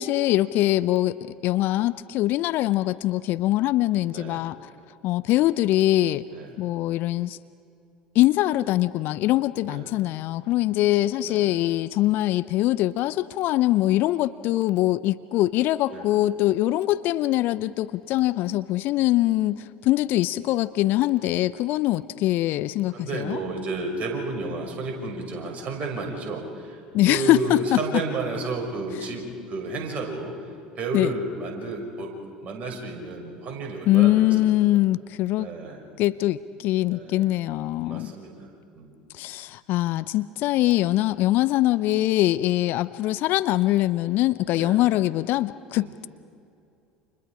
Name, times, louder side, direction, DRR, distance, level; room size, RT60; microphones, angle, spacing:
voice 1, 0.0-4.6 5.0-6.3 6.6-7.4 8.1-23.4 26.9-27.8 30.9-31.1 33.9-35.5 36.0-38.1 39.1-46.1, left 15 dB, 50° left, 16 dB, 0.6 m, -23 dB
voice 2, 4.1-4.4 6.3-6.5 9.6-9.9 11.2-11.5 15.9-16.1 22.9-26.8 27.1-30.4 30.8-32.1 32.4-34.3 35.4-35.8 36.9-37.3 37.9-38.5 38.7-38.9 44.5-44.9 45.7-45.9, right 3 dB, 35° right, 1 dB, 6.2 m, -32 dB
30.0 x 27.5 x 5.0 m, 2.5 s
figure-of-eight pair, 70°, 4 cm